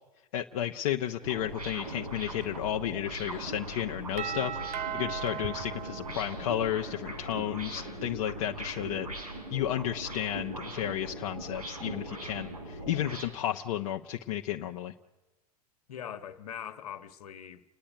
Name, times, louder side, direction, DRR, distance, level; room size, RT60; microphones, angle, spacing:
voice 1, 0.3-14.9, left 11 dB, 60° left, 1.0 m, -33 dB
Wind, 0.9-7.4, right 2 dB, 50° right, 2.6 m, -52 dB
sound 1, 1.2-13.3, right 1 dB, 85° right, 6.7 m, -40 dB
Doorbell, 4.2-7.0, right 9 dB, 35° right, 0.8 m, -38 dB
voice 2, 7.6-8.0 15.9-17.6, left 9 dB, 80° left, 1.5 m, -42 dB
30.0 x 10.0 x 9.4 m
hypercardioid pair, 110°, 19 cm